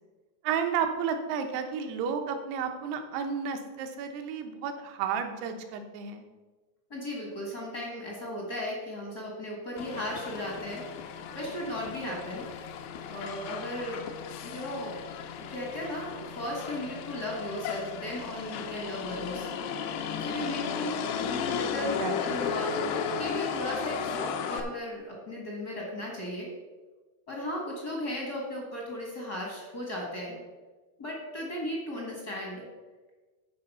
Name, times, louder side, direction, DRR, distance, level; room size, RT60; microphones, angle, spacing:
voice 1, 0.4-6.2 22.0-22.1, right 7 dB, 80° right, 6 dB, 2.9 m, -32 dB
voice 2, 6.9-12.6 13.1-14.0 14.4-15.0 15.4-19.5 20.2-26.5 27.3-30.4 31.0-32.7, left 1 dB, 50° left, -2 dB, 1.1 m, -36 dB
Motor vehicle (road), 9.8-24.6, left 7 dB, 80° left, 2.5 m, -35 dB
12.0 x 4.8 x 5.5 m, 1.3 s
omnidirectional pair, 4.7 m